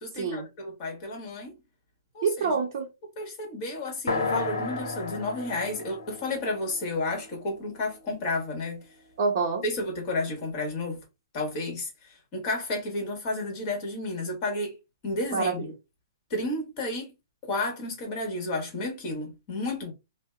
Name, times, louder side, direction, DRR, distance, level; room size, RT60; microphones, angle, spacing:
voice 1, 0.0-1.5 2.1-2.5 3.2-8.8 9.6-11.0 11.3-14.7 15.0-15.7 16.3-17.1 17.4-19.9, left 2 dB, 35° left, 1.3 m, -32 dB
voice 2, 2.2-2.9 9.2-9.6 15.3-15.5, right 5 dB, 50° right, 0.6 m, -26 dB
sound 1, 4.1-8.0, left 3 dB, 80° left, 0.8 m, -33 dB
2.7 x 2.0 x 2.3 m
hypercardioid pair, 125°, 2 cm